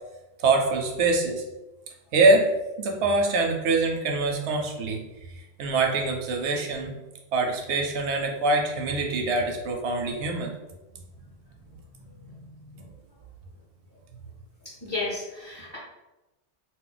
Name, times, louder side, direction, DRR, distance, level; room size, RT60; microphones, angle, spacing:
voice 1, 0.4-1.4 2.1-2.5 2.8-5.0 5.6-6.9 7.3-10.5, right 3 dB, 80° right, 2 dB, 0.9 m, -24 dB
voice 2, 14.8-15.8, left 3 dB, 25° left, -9 dB, 0.6 m, -32 dB
2.4 x 2.1 x 3.7 m, 1.0 s
omnidirectional pair, 1.1 m